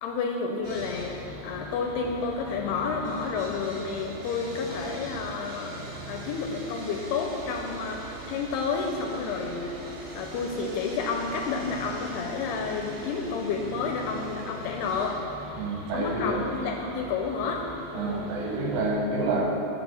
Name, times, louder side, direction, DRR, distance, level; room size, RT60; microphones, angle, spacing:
voice 1, 0.0-5.8 6.1-9.8 10.1-15.2 15.9-17.6 17.9-18.3, left 5 dB, 85° left, 2 dB, 2.4 m, -30 dB
Sawing, 0.6-18.9, right 1 dB, 65° right, 4.0 m, -41 dB
voice 2, 15.6-16.4 17.9-19.5, right 2 dB, 80° right, -1 dB, 3.5 m, -28 dB
12.0 x 4.5 x 6.9 m, 3.0 s
omnidirectional pair, 5.0 m